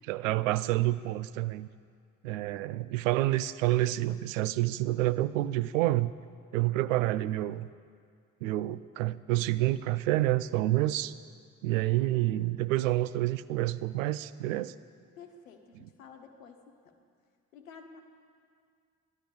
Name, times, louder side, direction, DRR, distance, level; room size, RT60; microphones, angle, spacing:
voice 1, 0.1-1.7 2.2-6.1 6.5-7.7 8.4-11.1 11.6-14.7, right 16 dB, 75° right, 16 dB, 0.5 m, -28 dB
voice 2, 15.2-17.0 17.5-18.0, left 6 dB, 80° left, 5 dB, 1.2 m, -51 dB
15.5 x 12.5 x 7.1 m, 2.2 s
figure-of-eight pair, 40°, 39 cm